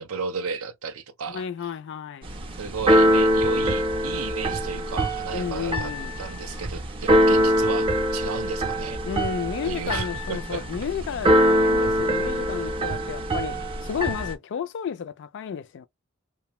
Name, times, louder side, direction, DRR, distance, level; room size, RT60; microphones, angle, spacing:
voice 1, 0.0-1.4 2.6-5.9 6.2-9.0 9.6-10.6, right 5 dB, 80° right, 0.6 m, -34 dB
voice 2, 1.3-2.3 5.3-6.2 9.0-15.9, left 7 dB, 60° left, 0.3 m, -32 dB
Keyboard (musical), 2.2-14.3, equal, 25° right, 0.5 m, -23 dB
2.5 x 2.1 x 2.9 m
head